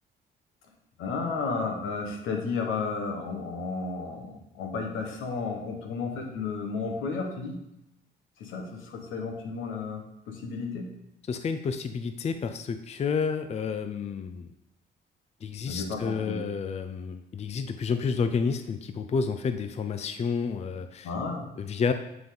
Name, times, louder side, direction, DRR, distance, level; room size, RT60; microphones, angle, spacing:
voice 1, 1.0-7.6 8.4-10.9 15.7-16.4 21.0-21.5, left 4 dB, 85° left, 3 dB, 1.2 m, -33 dB
voice 2, 11.3-14.5 15.4-21.1 21.6-21.9, left 5 dB, 35° left, 9 dB, 0.4 m, -30 dB
9.3 x 3.7 x 3.8 m, 0.83 s
cardioid pair, 90°, 20 cm